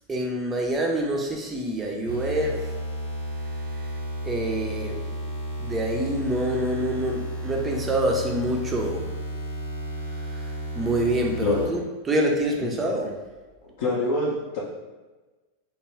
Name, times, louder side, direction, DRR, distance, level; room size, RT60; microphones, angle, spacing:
voice 1, 0.1-2.7 4.2-5.0 5.6-9.0 10.3-10.4 10.7-13.1, right 1 dB, 15° right, 0 dB, 0.4 m, -26 dB
sound 1, 2.0-11.7, equal, 85° right, 0.9 m, -33 dB
voice 2, 13.8-14.6, left 2 dB, 55° left, -6 dB, 0.4 m, -25 dB
2.2 x 2.1 x 3.3 m, 1.2 s
figure-of-eight pair, 90°, 0 cm